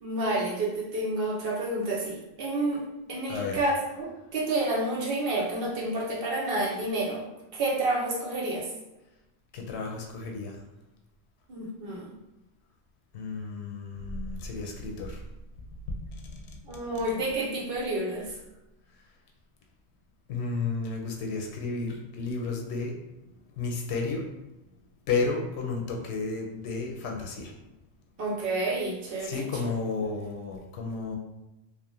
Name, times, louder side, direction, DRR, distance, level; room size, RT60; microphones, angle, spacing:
voice 1, 0.0-7.2 7.5-8.7 11.5-12.1 16.6-18.3 28.2-29.7, right 2 dB, 65° right, -3 dB, 0.9 m, -29 dB
voice 2, 3.3-3.7 9.5-10.6 13.1-15.2 16.1-16.8 20.3-22.9 23.6-24.2 25.1-27.5 29.2-31.2, left 4 dB, 85° left, 1 dB, 0.9 m, -32 dB
2.8 x 2.0 x 2.9 m, 0.99 s
omnidirectional pair, 1.1 m